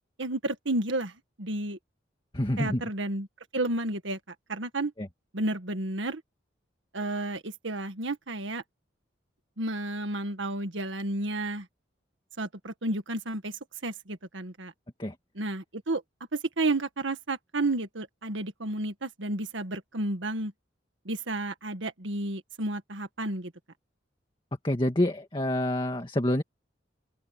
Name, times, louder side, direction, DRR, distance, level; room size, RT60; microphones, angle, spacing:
voice 1, 0.2-1.1 1.4-1.8 2.6-3.3 3.5-4.2 4.5-4.9 5.3-6.2 6.9-8.6 9.6-11.7 12.4-13.5 13.8-14.7 15.4-16.0 16.3-20.5 21.1-23.5, right 2 dB, 85° right, 1.8 m, -31 dB
voice 2, 2.3-2.8 5.0-5.1 15.0-15.1 24.6-26.4, left 1 dB, 25° left, 1.8 m, -27 dB
open air
head